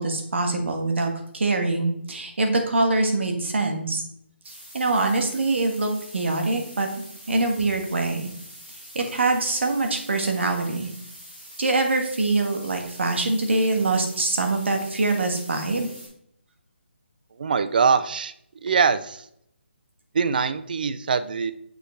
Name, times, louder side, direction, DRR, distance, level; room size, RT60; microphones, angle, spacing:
voice 1, 0.0-4.0 4.4-6.9 7.3-8.3 8.9-10.9 11.6-15.9, right 2 dB, 70° right, 3 dB, 1.5 m, -24 dB
sound 1, 4.4-16.1, equal, 15° right, 2.0 m, -45 dB
voice 2, 17.3-18.3 18.6-19.3 20.1-21.5, right 5 dB, 45° right, 12 dB, 0.4 m, -23 dB
6.4 x 5.1 x 3.3 m, 0.71 s
hypercardioid pair, 165°, 7 cm